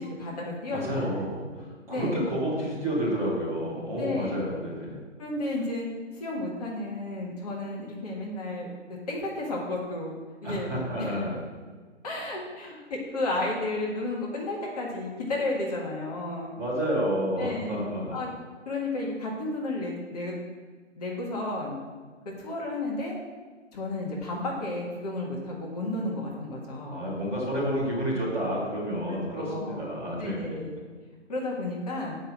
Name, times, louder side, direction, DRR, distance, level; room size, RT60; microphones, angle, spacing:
voice 1, 0.0-1.1 1.6-2.2 4.0-4.4 5.2-8.7 9.1-10.1 10.4-10.7 11.0-11.1 12.0-16.5 17.4-17.8 18.1-18.3 18.7-20.4 21.0-21.8 22.4-23.2 23.7-27.0 29.3-29.8 30.2-30.7 31.3-32.2, left 2 dB, 30° left, -3 dB, 1.8 m, -32 dB
voice 2, 0.7-4.9 10.4-11.4 16.6-18.2 26.9-30.6, equal, 5° right, -9 dB, 2.2 m, -30 dB
8.4 x 5.9 x 7.6 m, 1.5 s
figure-of-eight pair, 155°, 38 cm